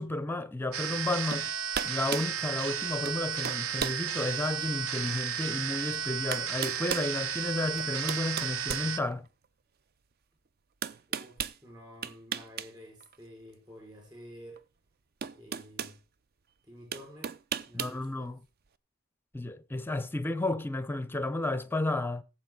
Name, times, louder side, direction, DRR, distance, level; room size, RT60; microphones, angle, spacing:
voice 1, 0.0-1.5 1.8-9.3 17.7-18.4 19.3-22.2, left 2 dB, 10° left, 0.6 m, -32 dB
sound 1, 0.7-9.0, right 8 dB, 65° right, 0.9 m, -33 dB
sound 2, 1.3-1.5 1.7-2.3 3.1-3.2 3.4-4.0 4.6-4.7 5.8-5.9 6.3-7.1 7.8-9.5 10.8-11.6 12.0-12.7 13.0-13.2 14.6-14.7 15.2-16.0 16.9-18.0, right 7 dB, 45° right, 0.5 m, -35 dB
voice 2, 11.1-14.6 15.3-16.0 16.7-17.4 17.7-18.3, equal, 20° right, 4.9 m, -50 dB
16.5 x 7.7 x 3.8 m
head